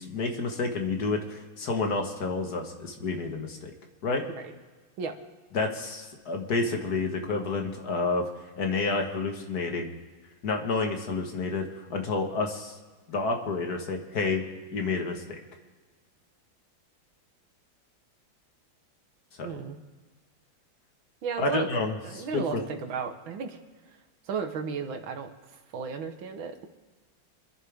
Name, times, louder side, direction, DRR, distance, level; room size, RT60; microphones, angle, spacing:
voice 1, 0.0-3.7 4.0-4.2 5.5-8.2 8.6-9.9 10.4-12.8 13.1-14.4 14.7-15.4 19.4-19.5 21.4-22.6, left 3 dB, 55° left, 3 dB, 2.0 m, -29 dB
voice 2, 19.4-19.8 21.2-21.7 22.0-23.6 24.2-26.7, right 5 dB, 75° right, 6 dB, 2.0 m, -34 dB
27.5 x 11.0 x 3.6 m, 1.4 s
omnidirectional pair, 2.2 m